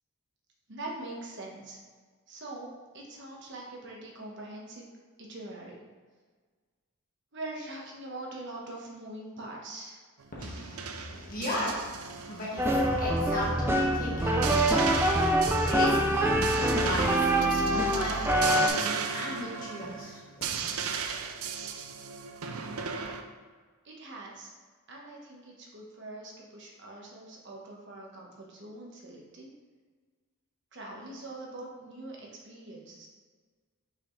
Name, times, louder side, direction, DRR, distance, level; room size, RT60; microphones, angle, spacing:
voice 1, 0.7-1.8 2.3-4.8 5.2-5.8 7.3-10.0 23.8-24.5 24.9-29.5 30.7-33.1, right 2 dB, 50° right, -2 dB, 1.3 m, -43 dB
sound 1, 10.2-23.2, right 6 dB, 80° right, 0.5 m, -36 dB
voice 2, 10.4-14.8 15.1-20.2, left 1 dB, 40° left, -5 dB, 1.7 m, -36 dB
sound 2, 12.6-18.7, right 1 dB, 10° right, 0.4 m, -25 dB
6.0 x 5.6 x 3.2 m, 1.5 s
head